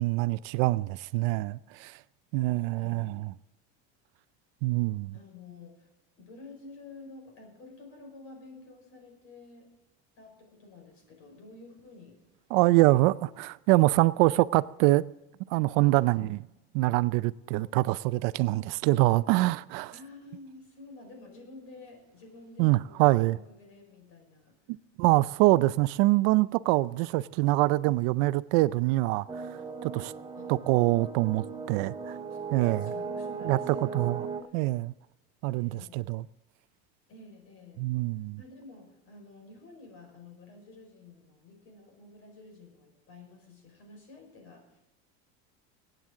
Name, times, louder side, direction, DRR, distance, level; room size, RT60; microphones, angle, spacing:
voice 1, 0.0-2.0 2.3-3.3 4.6-5.1 12.5-15.0 15.5-16.4 16.7-19.9 22.6-23.4 25.0-30.1 30.5-32.2 32.5-32.9 33.4-34.3 34.5-34.9 35.4-36.2 37.8-38.4, right 19 dB, 65° right, 0.5 m, -25 dB
voice 2, 2.7-3.2 5.1-5.9 6.2-9.7 10.2-12.2 12.9-13.4 15.9-16.4 19.9-24.6 30.3-30.5 32.3-32.4 32.8-34.5 35.5-36.0 37.1-37.9 38.4-44.8, left 3 dB, 45° left, 5.0 m, -50 dB
sound 1, 29.3-34.4, right 5 dB, 15° right, 0.7 m, -37 dB
23.5 x 9.1 x 3.7 m
cardioid pair, 155°, 31 cm